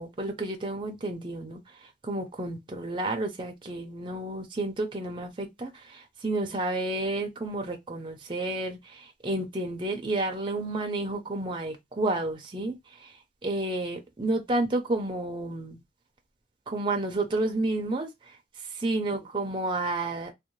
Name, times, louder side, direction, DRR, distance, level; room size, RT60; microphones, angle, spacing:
voice 1, 0.0-1.6 2.0-13.1 13.4-15.8 16.7-18.1 18.7-20.3, right 2 dB, 25° right, 0.5 m, -31 dB
2.6 x 2.1 x 2.9 m
head